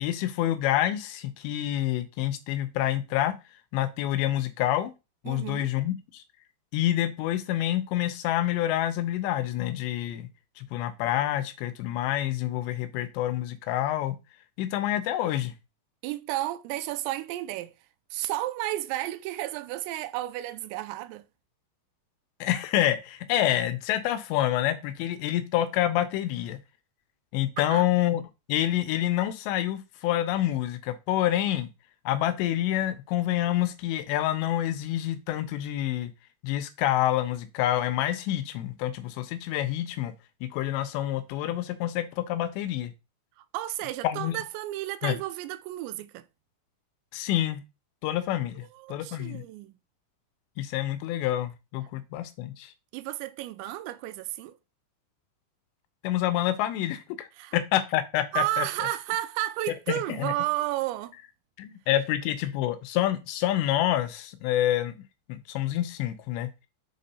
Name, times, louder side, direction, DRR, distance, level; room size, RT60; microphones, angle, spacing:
voice 1, 0.0-3.3 3.7-4.9 5.2-6.2 6.7-10.3 10.6-14.2 14.6-15.5 22.4-26.6 27.3-28.2 28.5-31.7 32.1-36.1 36.4-40.1 40.4-42.9 44.0-44.4 45.0-45.2 47.1-47.6 48.0-49.4 50.6-52.7 56.0-58.7 59.9-60.3 61.6-64.9 65.3-66.5, left 13 dB, 85° left, 2.8 m, -27 dB
voice 2, 5.3-5.7 16.0-17.7 18.1-21.2 27.7-27.9 43.4-46.3 48.8-49.7 52.9-54.6 57.4-57.6 58.3-61.1, right 15 dB, 85° right, 2.8 m, -32 dB
7.6 x 3.6 x 4.1 m
omnidirectional pair, 5.2 m